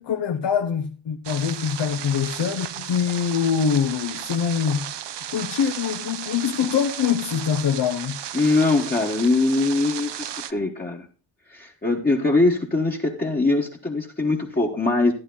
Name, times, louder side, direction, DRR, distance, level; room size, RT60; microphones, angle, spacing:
voice 1, 0.0-4.9 5.3-8.2, left 7 dB, 75° left, 0.8 m, -24 dB
sound 1, 1.2-10.5, right 10 dB, 75° right, 0.7 m, -34 dB
voice 2, 8.3-11.1 11.5-15.1, left 3 dB, 20° left, 1.2 m, -22 dB
12.0 x 11.0 x 3.9 m
wide cardioid pair, 115°, 43 cm